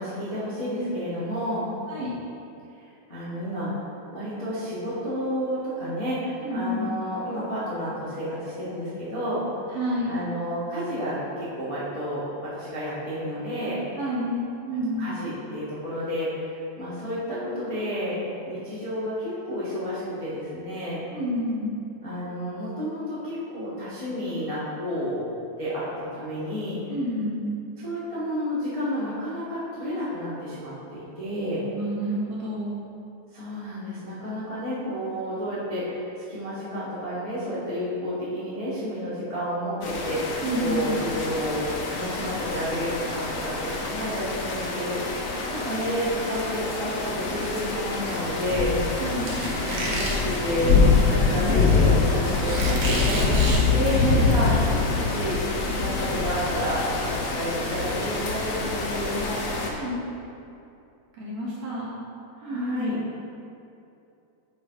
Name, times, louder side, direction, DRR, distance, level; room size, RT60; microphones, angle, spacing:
voice 1, 0.0-1.7 3.1-3.7 4.1-9.4 10.0-13.8 15.0-16.5 16.8-18.2 18.4-21.0 22.0-25.2 25.6-25.8 26.1-26.8 27.8-31.6 33.3-36.0 36.3-41.6 41.9-45.0 45.5-48.7 49.6-50.7 51.1-53.4 53.7-55.4 55.7-56.8 57.2-59.5 62.4-63.0, equal, 20° left, -11 dB, 0.8 m, -30 dB
voice 2, 6.4-6.9 9.7-10.2 13.9-15.1 21.1-21.7 26.9-27.5 31.7-32.9 40.4-41.0 49.0-49.4 59.7-60.0 61.2-62.0 62.4-63.0, equal, 60° right, -7 dB, 2.2 m, -29 dB
sound 1, 39.8-59.7, left 4 dB, 85° left, 1.2 m, -25 dB
Squeak, 49.2-54.3, equal, 80° right, 0.9 m, -31 dB
8.4 x 3.9 x 4.7 m, 2.6 s
omnidirectional pair, 3.6 m